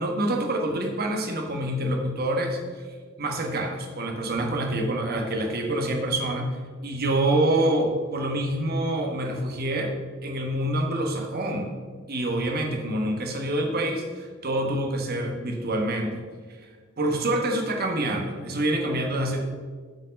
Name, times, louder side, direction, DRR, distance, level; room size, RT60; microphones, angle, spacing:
voice 1, 0.0-2.6 3.2-6.5 6.8-9.9 10.2-11.7 12.1-16.2 17.0-19.4, right 1 dB, 50° right, 2 dB, 1.2 m, -26 dB
7.8 x 4.7 x 5.2 m, 1.5 s
head